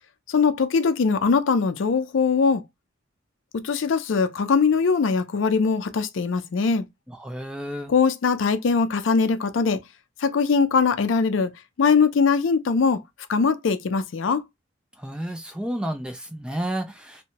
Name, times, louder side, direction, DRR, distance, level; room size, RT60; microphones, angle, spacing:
voice 1, 0.3-2.6 3.5-6.9 7.9-9.8 10.2-11.5 11.8-13.0 13.3-14.4, left 5 dB, 85° left, 0.4 m, -21 dB
voice 2, 7.1-7.9 15.0-17.2, right 1 dB, 5° right, 0.3 m, -31 dB
2.9 x 2.1 x 2.6 m
head